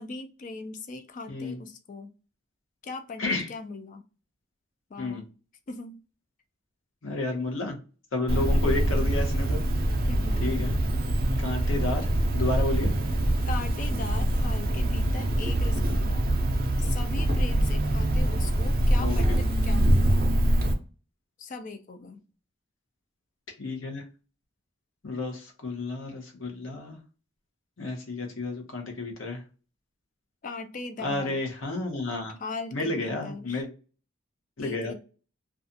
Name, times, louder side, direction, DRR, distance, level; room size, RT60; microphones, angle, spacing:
voice 1, 0.0-2.1 2.8-4.0 4.9-5.3 5.7-6.0 10.1-10.7 13.5-16.3 16.8-20.2 21.4-22.2 30.4-31.5 32.4-33.7 34.6-34.9, left 3 dB, 40° left, 0.3 m, -39 dB
voice 2, 1.3-1.6 3.2-3.5 5.0-5.2 7.0-7.8 8.1-9.6 10.4-10.8 11.4-12.9 19.0-19.4 23.6-24.0 25.0-27.0 27.8-29.4 31.0-32.3 32.7-33.7 34.6-34.9, left 2 dB, 80° left, 0.7 m, -31 dB
Cricket, 8.3-20.7, right 1 dB, 45° right, 0.4 m, -24 dB
2.5 x 2.3 x 2.6 m
head